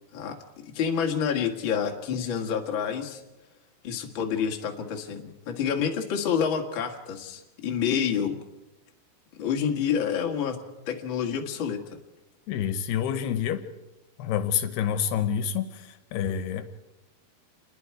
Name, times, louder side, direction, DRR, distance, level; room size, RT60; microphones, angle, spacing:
voice 1, 0.1-3.2 3.8-8.4 9.4-10.6 10.9-11.8, left 7 dB, 40° left, 2 dB, 1.9 m, -28 dB
voice 2, 12.5-13.6 14.2-16.7, left 9 dB, 80° left, 10 dB, 2.9 m, -28 dB
28.0 x 21.0 x 4.8 m, 1.0 s
omnidirectional pair, 4.8 m